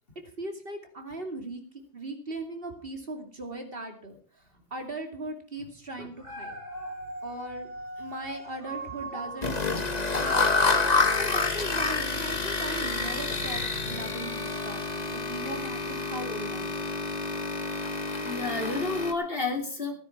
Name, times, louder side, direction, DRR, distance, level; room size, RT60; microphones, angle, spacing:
voice 1, 0.4-1.6 1.9-4.4 4.7-6.6 7.2-7.7 8.0-9.6 10.1-10.8 11.2-16.9, right 2 dB, 55° right, 4 dB, 2.7 m, -38 dB
Dog, 6.0-11.3 11.9-12.0, right 2 dB, 90° right, 3.0 m, -41 dB
sound 1, 9.4-19.1, left 3 dB, 40° left, 1.4 m, -28 dB
voice 2, 18.2-20.0, left 3 dB, 55° left, 4 dB, 3.0 m, -32 dB
17.0 x 9.6 x 5.9 m, 0.43 s
omnidirectional pair, 1.1 m